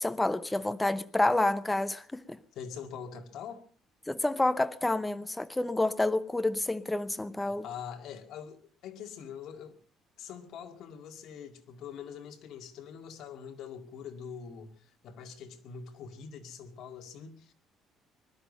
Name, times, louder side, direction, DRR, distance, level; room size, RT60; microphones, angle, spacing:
voice 1, 0.0-2.4 4.1-7.6, left 2 dB, 10° left, 0.8 m, -29 dB
voice 2, 2.6-3.6 7.4-9.8 10.2-17.5, left 7 dB, 65° left, 2.1 m, -44 dB
20.5 x 12.5 x 5.4 m
cardioid pair, 140°, 0 cm